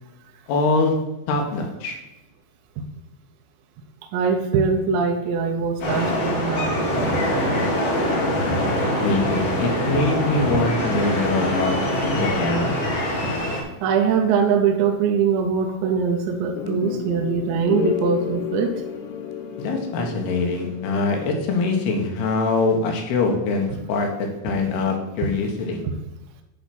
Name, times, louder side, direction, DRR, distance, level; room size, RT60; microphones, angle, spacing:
voice 1, 0.5-0.9 1.3-2.0 9.0-11.8 12.1-12.7 19.6-24.1 24.4-25.8, left 3 dB, 65° left, 2 dB, 2.9 m, -23 dB
voice 2, 4.1-7.2 10.5-10.6 13.8-18.7 25.8-26.0, right 6 dB, 80° right, 3 dB, 2.8 m, -22 dB
sound 1, 5.8-13.6, equal, 50° left, 3.1 m, -23 dB
sound 2, 16.6-21.7, left 9 dB, 90° left, 3.6 m, -31 dB
10.5 x 4.0 x 6.0 m, 0.98 s
omnidirectional pair, 5.6 m